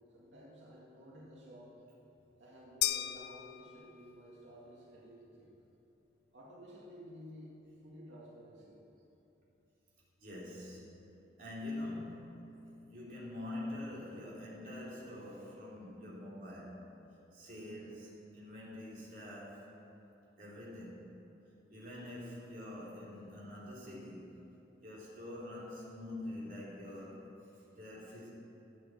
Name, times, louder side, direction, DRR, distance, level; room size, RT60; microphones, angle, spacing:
voice 1, 0.1-1.8 2.4-5.5 6.3-7.6 7.8-8.8, equal, 85° right, -5 dB, 2.3 m, -53 dB
sound 1, 2.8-4.3, left 13 dB, 55° left, 0.4 m, -36 dB
voice 2, 10.2-10.9 11.4-12.6 12.9-16.9 17.3-19.7 20.4-21.1 21.7-24.3 24.8-27.3 27.7-28.3, left 1 dB, 45° right, -6 dB, 3.4 m, -45 dB
13.0 x 8.4 x 7.6 m, 3.0 s
head